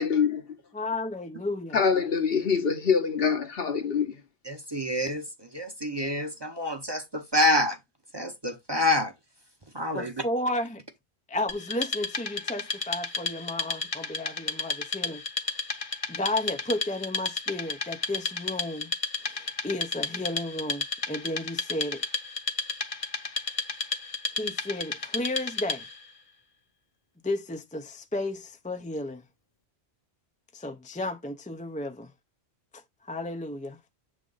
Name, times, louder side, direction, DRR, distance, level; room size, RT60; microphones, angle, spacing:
voice 1, 0.0-0.4 1.7-4.1, left 6 dB, 65° left, 1.1 m, -24 dB
voice 2, 0.7-1.8 9.9-10.8 11.3-15.2 16.1-18.9 19.3-22.1 24.4-25.8 27.2-29.2 30.5-32.1 33.0-33.8, left 1 dB, 10° left, 0.4 m, -33 dB
voice 3, 4.5-7.8 8.1-9.1 9.7-10.2, left 1 dB, 25° right, 0.8 m, -27 dB
Wood, 11.5-26.0, left 3 dB, 35° left, 0.9 m, -33 dB
7.4 x 3.4 x 3.8 m
omnidirectional pair, 1.1 m